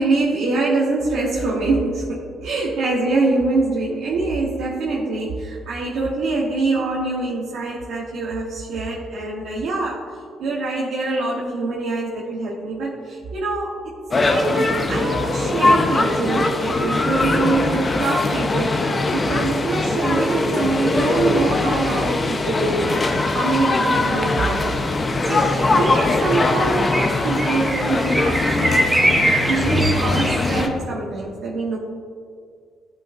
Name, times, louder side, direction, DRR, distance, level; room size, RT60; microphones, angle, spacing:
voice 1, 0.0-13.9 14.2-24.8 25.3-28.9 29.5-31.8, right 3 dB, 80° right, -4 dB, 1.1 m, -24 dB
sound 1, 14.1-30.7, left 2 dB, 30° left, 0.8 m, -21 dB
sound 2, 25.2-30.7, right 1 dB, 15° right, 1.3 m, -24 dB
13.0 x 5.9 x 2.5 m, 2.2 s
cardioid pair, 90°, 0 cm